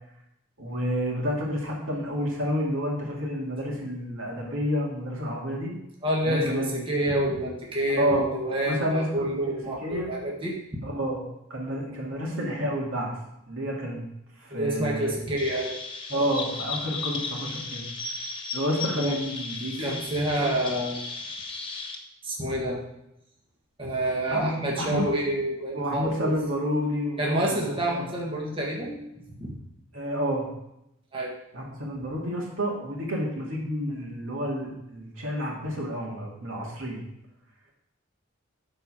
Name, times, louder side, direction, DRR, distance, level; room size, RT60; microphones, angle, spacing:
voice 1, 0.6-5.7 6.3-6.7 7.9-8.4 8.6-10.1 10.8-11.2 11.5-13.1 13.5-14.0 14.4-15.1 16.1-17.8 18.5-19.9 20.4-20.5 24.3-25.0 25.7-28.1 29.9-30.5 31.5-37.0, equal, 75° right, -2 dB, 2.4 m, -29 dB
voice 2, 6.0-10.8 14.5-15.8 19.0-19.2 19.8-21.0 22.2-22.8 23.8-26.3 27.2-29.0 29.4-29.5 31.1-31.3, right 1 dB, 25° right, -3 dB, 1.6 m, -28 dB
Chirp tweet, 15.4-21.9, left 4 dB, 25° left, 1.1 m, -35 dB
12.0 x 4.5 x 5.0 m, 0.82 s
head